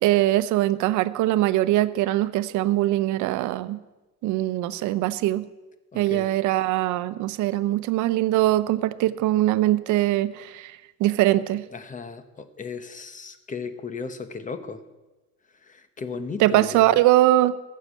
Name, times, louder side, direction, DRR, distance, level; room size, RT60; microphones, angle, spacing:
voice 1, 0.0-3.8 4.2-5.4 5.9-11.6 16.4-17.6, right 15 dB, 85° right, 14 dB, 0.7 m, -22 dB
voice 2, 5.9-6.3 11.7-14.8 15.6-17.0, left 4 dB, 25° left, 11 dB, 0.9 m, -35 dB
15.0 x 6.6 x 7.6 m, 1.1 s
cardioid pair, 130°, 29 cm